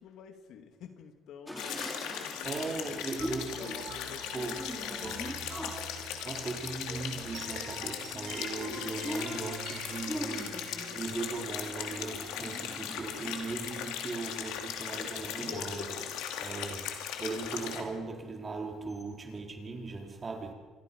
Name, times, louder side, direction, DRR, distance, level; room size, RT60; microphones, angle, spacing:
voice 1, 0.0-3.2 3.6-4.9, left 7 dB, 70° left, 2.6 m, -50 dB
sound 1, 1.5-16.2 16.7-17.6 18.2-18.3 18.6-19.4, equal, 5° left, 4.5 m, -44 dB
sound 2, 1.6-17.8, left 9 dB, 90° left, 2.9 m, -38 dB
voice 2, 2.4-3.6 4.3-5.3 6.2-10.6 10.9-20.5, right 3 dB, 30° right, 4.4 m, -39 dB
sound 3, 3.2-12.9, right 6 dB, 60° right, 4.3 m, -47 dB
27.0 x 23.0 x 5.6 m
cardioid pair, 105°, 0 cm